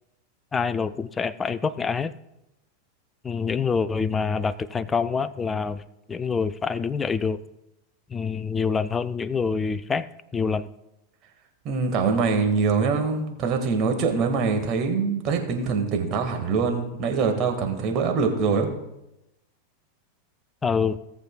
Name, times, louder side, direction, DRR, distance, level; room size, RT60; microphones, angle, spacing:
voice 1, 0.5-2.1 3.2-7.4 8.1-10.1 10.3-10.7 20.6-21.0, left 5 dB, 15° left, 15 dB, 0.4 m, -26 dB
voice 2, 11.7-18.7, right 5 dB, 35° right, 4 dB, 1.7 m, -24 dB
18.0 x 7.3 x 2.3 m, 0.90 s
figure-of-eight pair, 90°, 0 cm